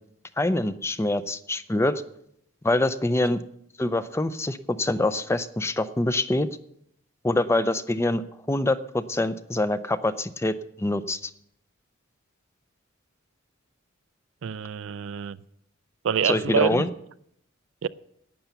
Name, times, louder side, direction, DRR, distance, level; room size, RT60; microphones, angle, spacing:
voice 1, 0.4-2.0 2.6-3.4 3.8-6.5 7.2-8.2 8.5-11.3 16.2-16.9, left 2 dB, 15° left, 0.4 m, -25 dB
voice 2, 14.4-15.4 16.0-16.8 17.8-17.9, right 7 dB, 65° right, 0.4 m, -26 dB
11.5 x 9.0 x 6.9 m
head